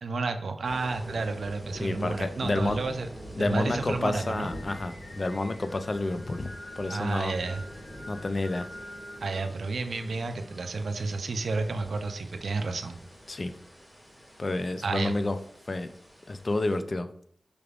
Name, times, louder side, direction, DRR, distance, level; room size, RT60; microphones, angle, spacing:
voice 1, 0.0-3.1 3.4-4.5 6.9-7.6 9.2-13.0 14.8-15.1, right 3 dB, 90° right, 7 dB, 0.4 m, -31 dB
sound 1, 0.6-16.8, equal, 15° left, 1.7 m, -45 dB
voice 2, 1.8-2.8 3.4-7.4 8.1-8.7 13.3-13.5 14.4-15.4 15.7-15.9 16.3-17.1, left 2 dB, 45° left, 9 dB, 0.3 m, -29 dB
Singing, 4.1-10.7, left 1 dB, 75° left, 1.1 m, -47 dB
4.8 x 3.3 x 2.4 m, 0.64 s
wide cardioid pair, 75°, 0 cm